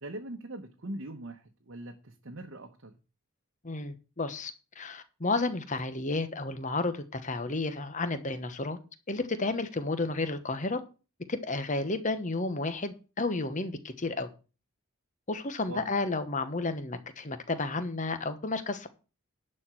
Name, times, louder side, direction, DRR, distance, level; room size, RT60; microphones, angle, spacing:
voice 1, 0.0-3.0 15.7-15.9, right 1 dB, 60° right, 1.0 m, -41 dB
voice 2, 3.6-4.5 4.8-8.8 9.1-10.8 11.3-14.3 15.3-18.9, left 3 dB, 35° left, 1.1 m, -32 dB
11.5 x 4.4 x 7.7 m
head